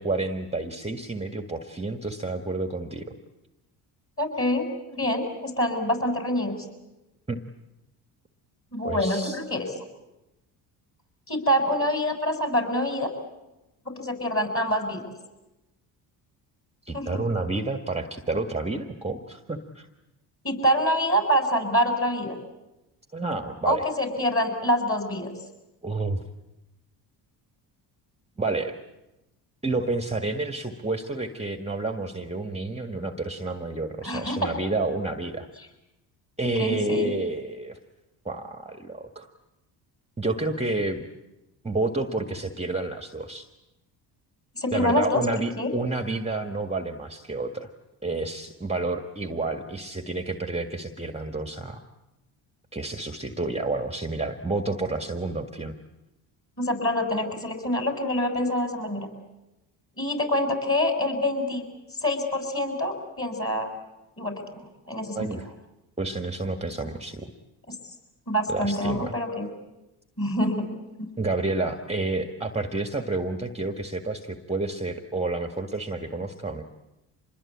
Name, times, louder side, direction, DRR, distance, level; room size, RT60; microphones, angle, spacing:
voice 1, 0.0-3.1 7.3-7.4 8.8-9.4 16.9-19.9 23.1-23.9 25.8-26.2 28.4-28.8 29.6-35.5 36.4-37.8 38.3-39.3 40.2-41.1 41.6-43.5 44.7-47.7 48.0-51.8 52.7-55.8 65.1-65.5 66.0-67.3 68.5-69.1 71.2-76.6, right 2 dB, 15° right, 7 dB, 1.7 m, -30 dB
voice 2, 4.2-6.6 8.7-9.7 11.3-13.1 13.9-15.0 16.9-17.2 20.4-22.4 23.6-25.3 34.0-34.5 36.4-37.1 44.6-45.2 45.6-45.7 56.6-59.1 60.0-61.6 62.0-63.7 64.2-65.3 68.3-69.5 70.2-70.7 71.0-71.1, equal, 25° left, 5 dB, 7.5 m, -26 dB
26.0 x 21.0 x 8.6 m, 0.98 s
supercardioid pair, 65°, 49 cm